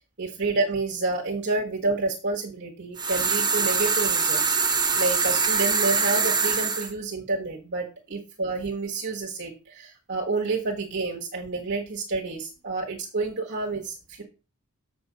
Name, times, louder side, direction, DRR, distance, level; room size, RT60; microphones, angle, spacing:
voice 1, 0.2-14.2, right 3 dB, 55° right, -2 dB, 1.5 m, -29 dB
sound 1, 3.0-6.9, right 5 dB, 20° right, 1.1 m, -23 dB
7.1 x 6.1 x 5.1 m, 0.32 s
head